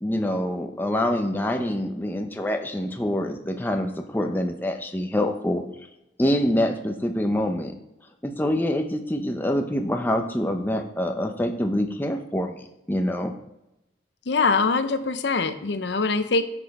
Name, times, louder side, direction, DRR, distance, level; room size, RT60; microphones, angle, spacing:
voice 1, 0.0-5.6 6.2-7.7 8.2-13.3, left 1 dB, 10° left, 4 dB, 0.6 m, -25 dB
voice 2, 14.3-16.4, left 4 dB, 70° left, 10 dB, 0.7 m, -23 dB
10.5 x 5.1 x 4.2 m, 0.92 s
head